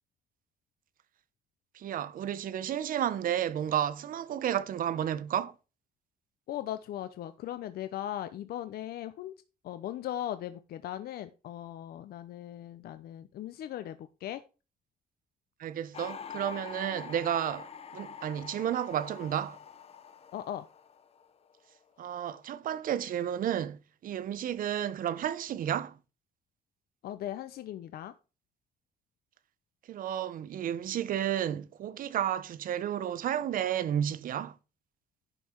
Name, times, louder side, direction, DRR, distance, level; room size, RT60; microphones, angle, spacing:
voice 1, 1.7-5.5 15.6-19.6 22.0-26.0 29.9-34.6, right 10 dB, 65° right, 0.9 m, -32 dB
voice 2, 6.5-9.3 9.6-14.4 20.3-20.7 27.0-28.1, left 12 dB, 80° left, 0.7 m, -38 dB
sound 1, 15.9-21.8 22.0-22.5, left 7 dB, 40° left, 0.9 m, -46 dB
11.0 x 5.6 x 4.5 m
cardioid pair, 145°, 16 cm